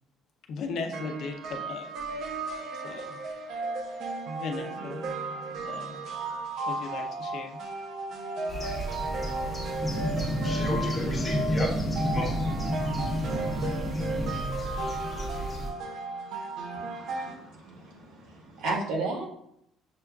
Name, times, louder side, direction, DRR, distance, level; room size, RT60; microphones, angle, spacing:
voice 1, 0.5-1.9 2.7-3.1 4.4-5.1 5.6-6.0 6.7-7.6, left 4 dB, 55° left, 3 dB, 0.6 m, -37 dB
sound 1, 0.9-17.3, right 2 dB, 60° right, 0.7 m, -35 dB
sound 2, 8.5-15.7, right 1 dB, ahead, 1.1 m, -36 dB
voice 2, 9.8-14.5, left 1 dB, 25° left, -2 dB, 1.0 m, -29 dB
voice 3, 16.7-19.3, right 3 dB, 80° right, -2 dB, 1.3 m, -34 dB
6.7 x 2.3 x 2.3 m, 0.74 s
cardioid pair, 155°, 0 cm